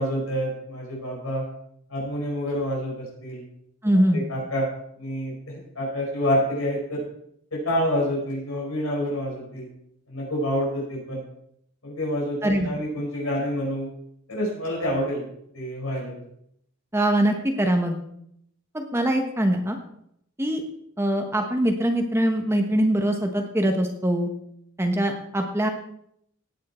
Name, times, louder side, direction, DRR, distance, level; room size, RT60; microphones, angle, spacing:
voice 1, 0.0-1.5 1.9-3.4 3.9-4.7 5.0-7.1 7.5-9.7 10.1-11.2 11.8-13.9 14.3-15.3 15.5-16.1, equal, 80° left, -4 dB, 5.6 m, -28 dB
voice 2, 3.8-4.2 12.4-12.7 16.9-18.0 18.7-19.8 20.4-20.6 21.0-24.3 24.8-25.7, right 1 dB, 10° right, 4 dB, 1.1 m, -23 dB
17.5 x 9.4 x 4.4 m, 0.73 s
head